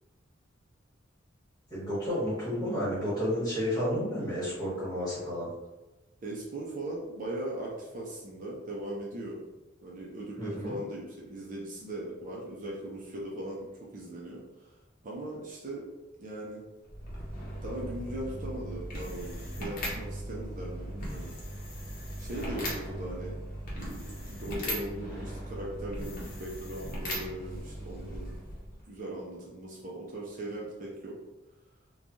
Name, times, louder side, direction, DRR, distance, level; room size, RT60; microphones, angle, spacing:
voice 1, 1.7-5.5 10.4-10.8, equal, 20° left, -9 dB, 1.5 m, -31 dB
voice 2, 6.2-9.4 9.8-13.7 13.9-14.8 15.0-15.9 16.2-16.6 17.6-21.4 22.2-23.4 23.7-28.3 28.8-31.2, right 1 dB, 40° right, -4 dB, 0.5 m, -39 dB
sound 1, 16.8-28.8, equal, 45° left, 0.8 m, -38 dB
3.1 x 2.2 x 2.6 m, 1.0 s
head